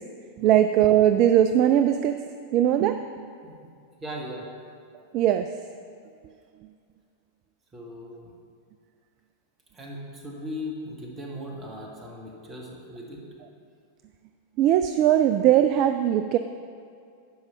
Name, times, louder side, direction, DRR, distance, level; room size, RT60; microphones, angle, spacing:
voice 1, 0.4-2.2 2.5-3.3 5.1-5.5 14.6-16.4, right 11 dB, 40° right, 9 dB, 0.3 m, -20 dB
voice 2, 4.0-4.5 7.7-8.3 9.7-13.3, left 1 dB, 20° right, -1 dB, 1.9 m, -38 dB
10.5 x 5.4 x 5.9 m, 2.3 s
figure-of-eight pair, 90°, 0 cm